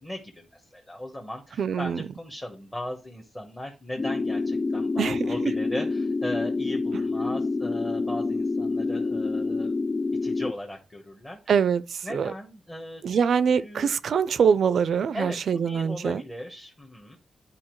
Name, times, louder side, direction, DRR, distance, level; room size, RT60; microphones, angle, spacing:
voice 1, 0.0-9.8 10.2-11.4 12.0-13.2 13.6-14.0 15.1-17.2, left 1 dB, 15° left, 1.0 m, -38 dB
voice 2, 1.6-2.0 5.0-5.5 11.5-12.3 13.0-16.2, right 6 dB, 60° right, 0.4 m, -24 dB
sound 1, 4.0-10.5, left 3 dB, 35° left, 0.3 m, -27 dB
11.0 x 4.5 x 3.1 m
wide cardioid pair, 170°, 0 cm